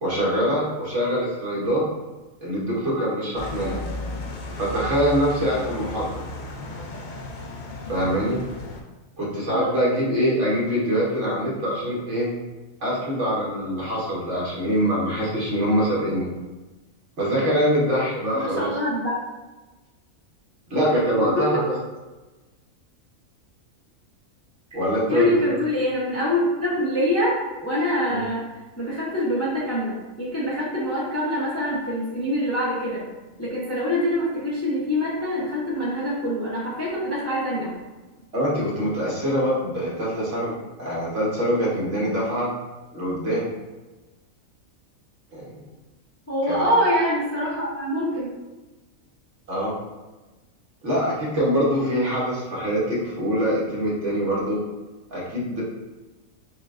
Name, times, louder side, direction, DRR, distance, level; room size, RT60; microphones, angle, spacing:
voice 1, 0.0-1.8 2.4-3.8 4.6-6.2 7.9-8.4 9.2-12.3 12.8-16.3 17.2-18.7 20.7-21.7 24.7-25.3 28.1-28.2 38.3-42.5 42.9-43.5 45.3-45.6 46.5-46.6 49.5-49.7 50.8-54.6 55.1-55.6, equal, 60° right, -6 dB, 1.4 m, -24 dB
sound 1, 3.4-8.8, left 1 dB, 80° left, 0.4 m, -34 dB
voice 2, 18.3-19.2 21.3-21.4 25.1-28.4 28.8-33.0 33.4-37.7 46.3-48.3, equal, 15° left, -7 dB, 0.5 m, -25 dB
6.3 x 2.3 x 2.5 m, 1.2 s
omnidirectional pair, 1.4 m